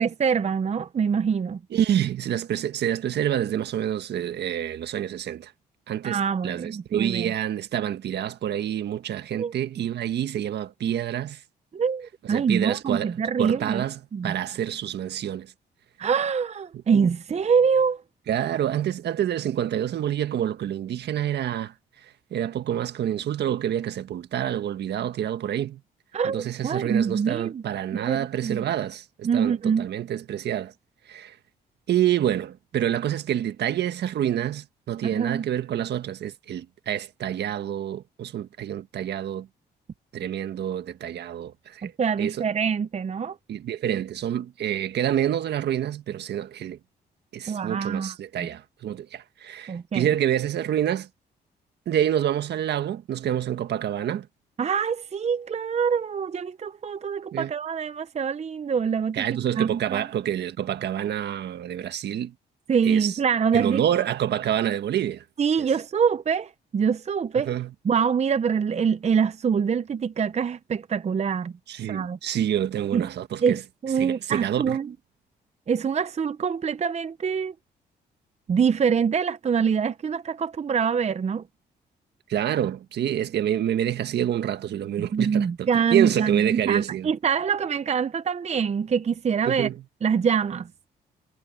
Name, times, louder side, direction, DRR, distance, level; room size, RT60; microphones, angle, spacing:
voice 1, 0.0-1.6 6.0-7.3 9.4-9.5 11.7-13.8 14.1-14.3 16.0-18.0 26.1-27.6 27.9-28.7 29.2-29.9 35.0-35.4 41.8-43.4 47.5-48.5 49.7-50.1 54.6-59.3 59.6-60.1 62.7-63.8 65.4-67.5 67.8-71.5 71.9-72.2 72.9-73.1 73.4-74.9 75.7-77.5 78.5-81.4 85.0-89.7 90.0-90.7, right 6 dB, 40° right, 0.7 m, -25 dB
voice 2, 1.7-5.5 5.9-11.4 12.3-13.1 13.4-15.5 18.3-21.7 22.3-25.8 26.2-30.7 31.1-31.3 31.9-39.5 40.1-41.9 42.2-42.4 43.5-46.8 47.3-51.1 51.8-54.3 57.3-57.5 59.1-62.3 62.8-63.2 63.5-65.2 67.5-67.7 71.7-73.6 74.0-74.8 82.3-87.1 89.5-89.7, right 10 dB, 70° right, 1.7 m, -27 dB
cardioid pair, 70°, 18 cm